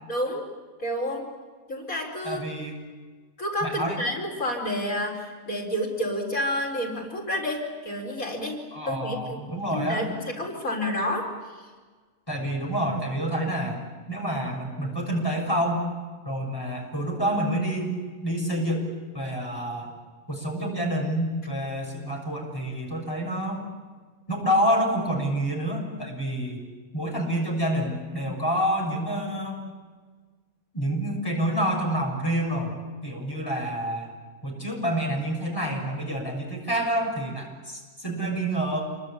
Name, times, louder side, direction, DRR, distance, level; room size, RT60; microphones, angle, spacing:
voice 1, 0.1-0.5 0.8-1.2 1.7-2.4 3.4-9.4 9.7-11.7, left 1 dB, 85° left, -1 dB, 5.0 m, -30 dB
voice 2, 2.2-2.8 3.6-4.0 8.7-10.1 12.3-13.8 14.1-15.9 16.2-18.0 18.2-18.9 19.1-19.9 20.3-23.6 24.3-26.6 26.9-29.6 30.7-32.7 33.0-34.1 34.4-38.8, right 1 dB, 15° left, 0 dB, 6.6 m, -28 dB
27.5 x 23.5 x 8.7 m, 1.4 s
omnidirectional pair, 1.4 m